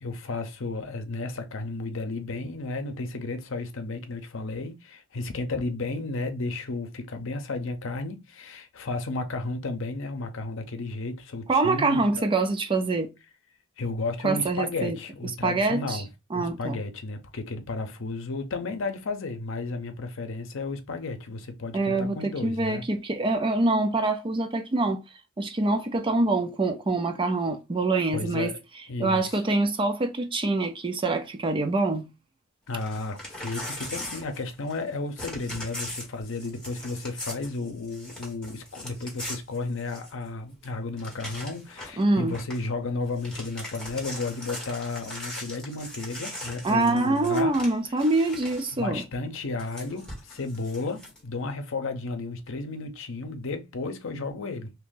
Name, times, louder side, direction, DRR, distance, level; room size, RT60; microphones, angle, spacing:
voice 1, 0.0-12.3 13.8-16.1 16.3-22.9 28.1-28.6 28.9-29.4 32.7-47.5 48.7-54.7, left 3 dB, 70° left, 0.7 m, -33 dB
voice 2, 11.5-13.1 14.2-15.0 15.4-16.0 16.3-16.8 21.7-25.0 25.4-28.5 29.0-32.0 42.0-42.4 46.6-49.0, right 2 dB, 25° right, 0.4 m, -25 dB
Crumpling crinkling / Tearing, 32.7-34.9 35.2-40.3 40.6-40.7 41.0-42.0 42.3-42.7 43.0-48.8 49.6-51.2, left 1 dB, 5° left, 1.5 m, -40 dB
2.8 x 2.6 x 3.7 m
head